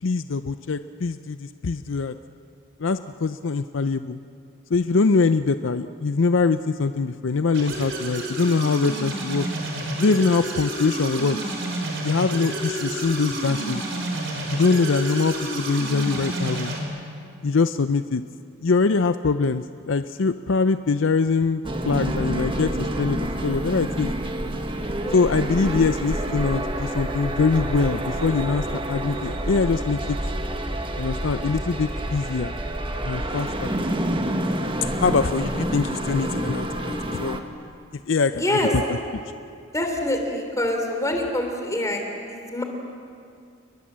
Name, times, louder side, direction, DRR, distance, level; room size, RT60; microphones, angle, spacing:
voice 1, 0.0-2.1 2.8-4.2 4.7-9.5 10.0-11.4 12.0-13.8 14.5-16.7 17.4-18.2 18.6-24.1 25.1-30.2 31.0-32.6 33.0-33.7 35.0-37.4 38.1-38.6, left 4 dB, 60° left, 11 dB, 0.5 m, -23 dB
sound 1, 7.5-16.8, right 1 dB, 55° right, 4.7 m, -29 dB
sound 2, 21.6-37.4, right 1 dB, 25° right, 1.4 m, -28 dB
voice 2, 25.0-25.4 38.3-38.7 39.7-42.0 42.3-42.6, left 1 dB, 15° left, 3 dB, 3.2 m, -25 dB
29.5 x 21.5 x 7.5 m, 2.4 s
head